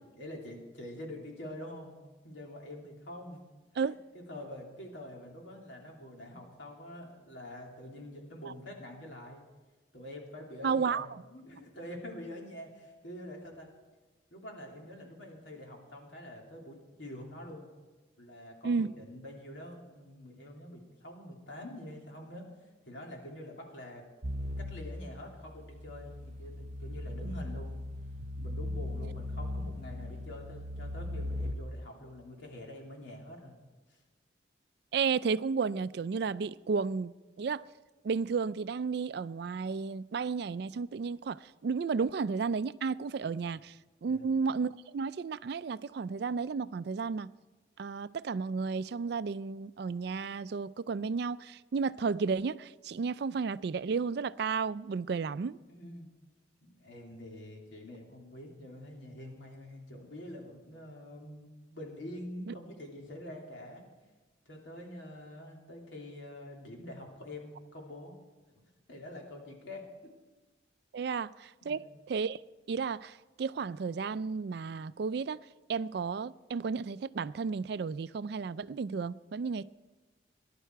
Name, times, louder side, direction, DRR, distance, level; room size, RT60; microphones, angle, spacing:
voice 1, 0.2-3.4 3.9-9.4 9.9-13.7 14.3-17.7 18.2-24.0 24.6-27.8 28.4-33.5 33.9-34.0 44.0-44.3 55.7-56.1 56.6-63.8 64.4-68.2 68.6-69.8 71.6-71.9, left 1 dB, 75° left, 3.1 m, -46 dB
voice 2, 10.6-11.2 18.6-18.9 34.9-37.6 38.0-43.8 44.0-47.3 47.8-55.6 62.5-62.6 70.9-72.4 72.7-75.4 75.7-79.6, right 5 dB, 60° right, 0.4 m, -33 dB
sound 1, 24.2-31.5, left 1 dB, 35° right, 0.9 m, -38 dB
19.0 x 11.0 x 4.6 m
head